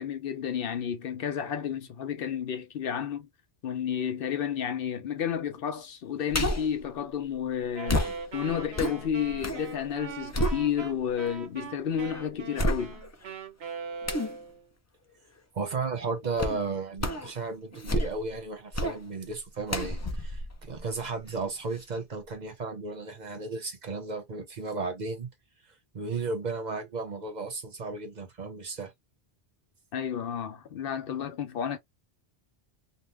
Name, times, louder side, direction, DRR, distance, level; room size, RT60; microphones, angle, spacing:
voice 1, 0.0-3.3 3.6-13.0 29.9-31.8, left 8 dB, 65° left, 0.7 m, -31 dB
sound 1, 6.3-6.8 7.9-9.7 10.0-11.1 11.6-11.7 12.6-13.2 14.1-14.4 16.4-16.6 17.0-17.3 17.7-18.3 18.7-19.0 19.7-21.4 21.8-21.9, left 1 dB, 25° left, 0.3 m, -30 dB
Wind instrument woodwind instrument, 7.7-14.7, right 6 dB, 90° right, 1.1 m, -41 dB
voice 2, 15.5-25.3 25.9-28.9, right 4 dB, 50° right, 0.8 m, -34 dB
2.8 x 2.2 x 3.2 m
omnidirectional pair, 1.1 m